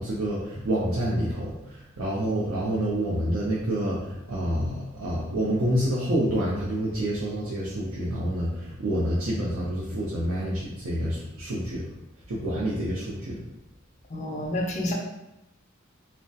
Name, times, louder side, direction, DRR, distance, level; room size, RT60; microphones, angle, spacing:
voice 1, 0.0-11.9 12.3-13.4, right 1 dB, 90° right, -6 dB, 0.5 m, -28 dB
voice 2, 14.1-14.9, left 1 dB, 35° left, 0 dB, 0.4 m, -29 dB
2.3 x 2.1 x 2.6 m, 0.91 s
head